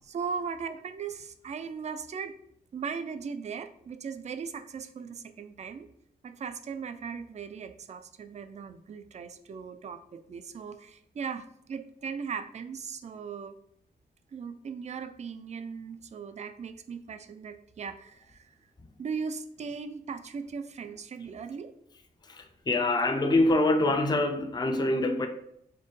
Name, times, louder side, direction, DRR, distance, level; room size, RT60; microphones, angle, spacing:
voice 1, 0.1-2.4 2.7-5.9 6.2-13.6 14.3-18.5 19.0-21.7, right 6 dB, 40° right, 10 dB, 0.4 m, -38 dB
voice 2, 22.2-25.3, left 2 dB, 25° left, 6 dB, 0.5 m, -25 dB
4.3 x 2.2 x 3.1 m, 0.71 s
cardioid pair, 70°, 17 cm